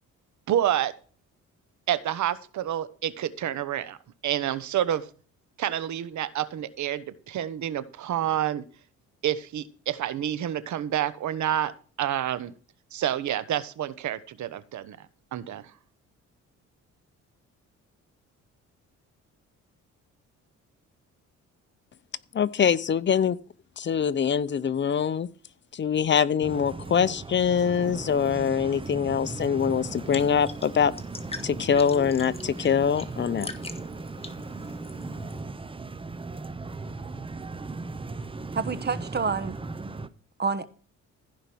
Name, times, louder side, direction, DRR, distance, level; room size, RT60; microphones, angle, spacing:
voice 1, 0.5-0.9 1.9-4.0 4.2-5.0 5.6-8.6 9.2-11.7 12.0-12.5 12.9-15.1 15.3-15.6, right 11 dB, 70° right, 1.2 m, -28 dB
voice 2, 22.3-23.4 23.8-25.3 25.7-30.9 31.4-33.5, left 7 dB, 40° left, 0.7 m, -24 dB
sound 1, 26.4-40.1, right 3 dB, 15° right, 0.8 m, -37 dB
sound 2, 29.6-35.4, left 3 dB, 20° left, 1.7 m, -43 dB
voice 3, 38.5-39.6 40.4-40.6, right 5 dB, 35° right, 1.2 m, -28 dB
15.5 x 5.2 x 6.2 m
cardioid pair, 90°, 30 cm